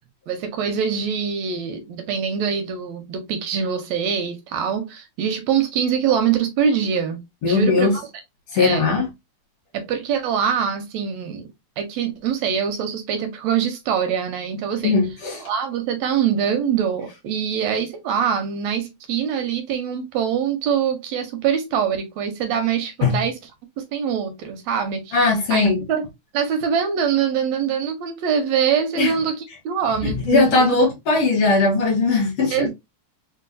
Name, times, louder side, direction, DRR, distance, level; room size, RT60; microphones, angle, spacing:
voice 1, 0.3-7.2 7.4-8.0 8.5-8.9 9.7-11.5 11.8-15.0 15.4-23.4 23.8-26.1 26.3-30.8 32.5-32.7, right 7 dB, 80° right, 1.7 m, -24 dB
voice 2, 7.4-8.0 8.5-9.1 14.8-15.5 23.0-23.2 25.1-25.8 29.0-29.1 30.0-32.7, left 4 dB, 60° left, 1.8 m, -19 dB
4.5 x 2.3 x 2.5 m
omnidirectional pair, 3.4 m